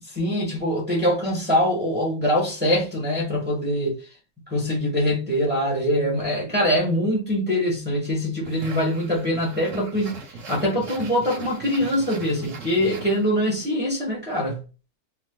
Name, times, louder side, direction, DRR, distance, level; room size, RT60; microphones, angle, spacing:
voice 1, 0.1-4.0 4.5-10.2 10.5-14.6, equal, 15° right, 0.4 m, -23 dB
sound 1, 8.4-13.7, right 3 dB, 55° right, 0.9 m, -40 dB
3.2 x 3.0 x 2.2 m
omnidirectional pair, 2.2 m